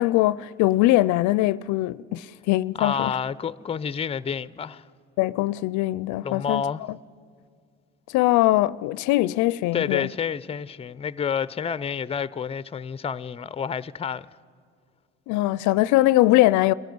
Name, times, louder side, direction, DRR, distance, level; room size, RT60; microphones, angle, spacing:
voice 1, 0.0-3.2 5.2-6.6 8.1-10.1 15.3-16.7, left 17 dB, 75° left, 0.5 m, -21 dB
voice 2, 2.8-4.9 6.2-6.8 9.7-14.3, left 7 dB, 20° left, 0.5 m, -29 dB
22.5 x 15.0 x 9.4 m
supercardioid pair, 75°, 29 cm